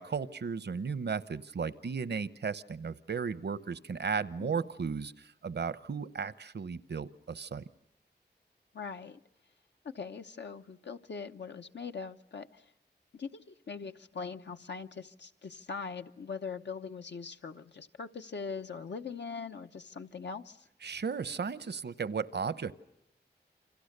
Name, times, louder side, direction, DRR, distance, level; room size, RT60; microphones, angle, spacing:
voice 1, 0.0-7.6 20.8-22.7, right 5 dB, 70° right, 16 dB, 0.9 m, -35 dB
voice 2, 8.7-9.2 9.8-12.6 13.1-20.7, left 5 dB, 80° left, 6 dB, 0.9 m, -41 dB
29.0 x 26.0 x 6.7 m, 0.82 s
wide cardioid pair, 100°, 18 cm